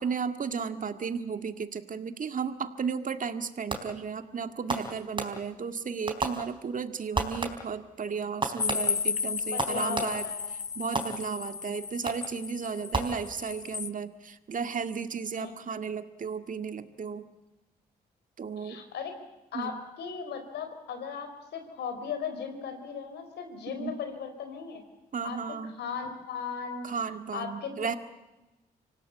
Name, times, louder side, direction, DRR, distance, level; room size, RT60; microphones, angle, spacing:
voice 1, 0.0-10.2 10.8-17.3 18.4-18.8 19.5-19.7 23.8-24.0 25.1-25.7 26.8-27.9, right 6 dB, 50° right, 9 dB, 1.9 m, -34 dB
Fireworks, 3.7-4.1 4.7-5.7 6.1-6.8 7.1-7.9 8.4-10.4 11.0-11.6 12.1-12.5 12.9-13.7, right 2 dB, 30° right, 4.1 m, -34 dB
sound 1, 8.6-13.9, left 6 dB, 45° left, 1.0 m, -34 dB
voice 2, 9.5-10.5 15.4-15.5 18.6-19.1 19.5-24.8 25.2-26.9 27.3-28.0, left 6 dB, 85° left, 7 dB, 4.3 m, -37 dB
25.5 x 17.0 x 8.4 m, 1.0 s
supercardioid pair, 55°, 17 cm